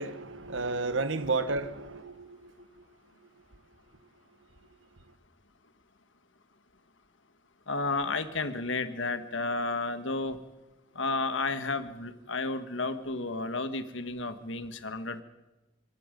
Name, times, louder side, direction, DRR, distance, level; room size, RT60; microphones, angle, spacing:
voice 1, 0.0-2.1, right 3 dB, 65° right, 1.3 m, -31 dB
voice 2, 7.7-10.4 10.9-15.2, left 3 dB, 65° left, 1.6 m, -32 dB
25.5 x 23.0 x 5.3 m
head